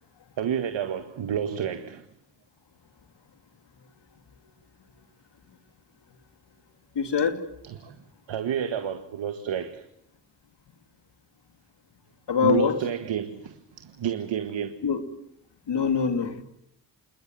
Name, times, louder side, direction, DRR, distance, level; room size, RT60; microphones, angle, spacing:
voice 1, 0.4-2.0 7.8-8.0 8.3-9.9 12.4-14.8, right 9 dB, 70° right, 1.8 m, -30 dB
voice 2, 6.9-7.4 12.3-12.8 14.8-15.0 15.7-16.4, left 6 dB, 60° left, 2.9 m, -24 dB
28.5 x 21.0 x 7.7 m
supercardioid pair, 40°, 47 cm